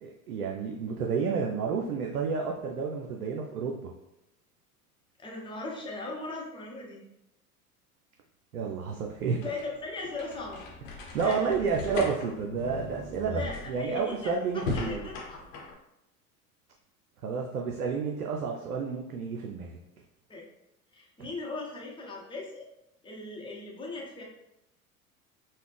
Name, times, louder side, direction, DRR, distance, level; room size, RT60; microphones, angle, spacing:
voice 1, 0.0-3.9 8.5-9.4 11.1-15.1 17.2-19.7, right 5 dB, 80° right, 1 dB, 0.5 m, -30 dB
voice 2, 5.2-7.0 9.4-10.6 11.2-11.6 13.3-15.4 20.3-20.4 20.9-22.7 23.0-24.2, left 2 dB, 10° left, -2 dB, 0.9 m, -38 dB
sound 1, 9.2-15.7, left 3 dB, 55° left, 0.9 m, -38 dB
4.0 x 2.1 x 3.3 m, 0.88 s
figure-of-eight pair, 75°, 44 cm